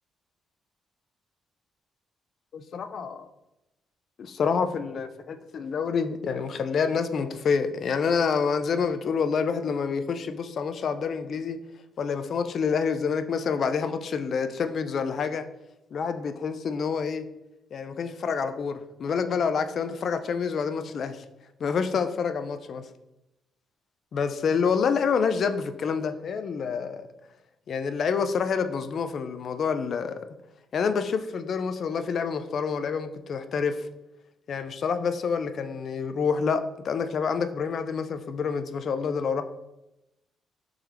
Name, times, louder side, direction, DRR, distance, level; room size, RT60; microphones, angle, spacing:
voice 1, 2.5-3.3 4.2-11.6 12.0-15.4 15.9-17.2 17.7-21.3 21.6-22.8 24.1-27.1 27.7-30.1 30.7-33.8 34.5-39.4, left 6 dB, 55° left, 0.3 m, -27 dB
3.5 x 3.1 x 3.3 m
cardioid pair, 90°, 0 cm